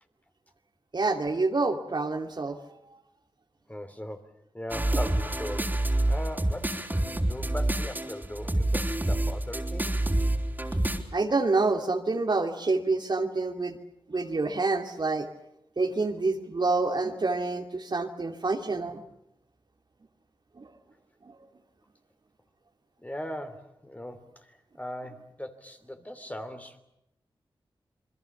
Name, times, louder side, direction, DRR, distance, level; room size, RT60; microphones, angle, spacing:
voice 1, 0.9-2.6 11.1-13.8 14.1-15.3 15.8-19.0 20.6-20.7 21.2-21.4, right 3 dB, 50° right, 5 dB, 2.6 m, -27 dB
voice 2, 3.7-5.8 6.1-6.9 7.2-10.0 23.0-26.8, equal, 15° left, 8 dB, 3.1 m, -39 dB
sound 1, 4.7-11.0, right 1 dB, 20° right, 4.1 m, -27 dB
28.0 x 21.5 x 7.1 m, 0.82 s
cardioid pair, 50°, 9 cm